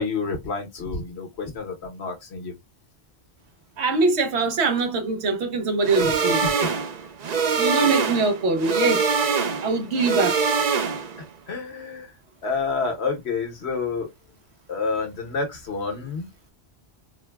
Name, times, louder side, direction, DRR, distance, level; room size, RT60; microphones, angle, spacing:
voice 1, 0.0-2.5 6.4-6.5 11.5-12.1 12.4-14.1 14.7-16.3, left 4 dB, 75° left, 1.3 m, -28 dB
voice 2, 3.8-6.5 7.6-9.0 9.6-10.4, right 3 dB, 85° right, 1.1 m, -23 dB
sound 1, 5.8-11.2, right 5 dB, 50° right, 0.5 m, -24 dB
4.1 x 2.2 x 2.2 m
omnidirectional pair, 1.1 m